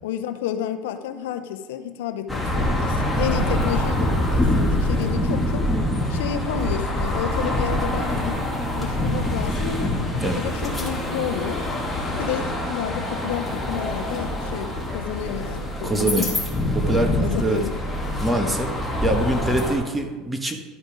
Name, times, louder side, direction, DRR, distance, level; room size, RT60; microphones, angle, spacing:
voice 1, 0.0-5.6 6.1-8.4 8.8-9.9 10.3-11.7 12.2-16.3 17.2-17.7, left 10 dB, 85° left, 8 dB, 0.6 m, -31 dB
sound 1, 2.3-19.7, left 1 dB, 5° left, 2.0 m, -25 dB
voice 2, 15.8-16.3 16.7-17.6 18.2-18.7 19.0-20.6, right 1 dB, 10° right, 4 dB, 1.3 m, -24 dB
12.0 x 5.2 x 5.0 m, 1.3 s
supercardioid pair, 105°, 0 cm